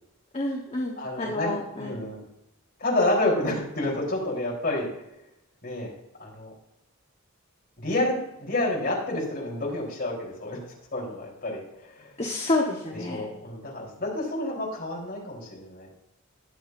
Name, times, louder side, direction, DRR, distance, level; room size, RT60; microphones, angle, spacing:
voice 1, 0.3-1.9 12.2-13.3, left 2 dB, 30° left, -1 dB, 1.2 m, -29 dB
voice 2, 1.0-2.2 2.8-4.9 5.6-5.9 6.2-6.5 7.8-10.6 10.9-12.1 13.1-15.9, left 1 dB, 45° left, -2 dB, 3.9 m, -29 dB
20.0 x 7.1 x 2.7 m, 0.87 s
head